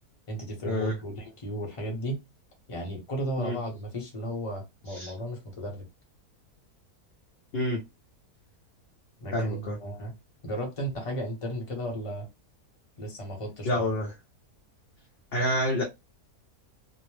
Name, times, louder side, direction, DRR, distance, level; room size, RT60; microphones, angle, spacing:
voice 1, 0.3-2.2 2.7-5.9 9.2-10.1 10.4-12.3 13.0-13.9, equal, 25° left, 0.8 m, -34 dB
voice 2, 9.3-9.8 13.6-14.1 15.3-15.8, left 1 dB, 55° left, 0.7 m, -28 dB
2.7 x 2.0 x 3.1 m
omnidirectional pair, 1.6 m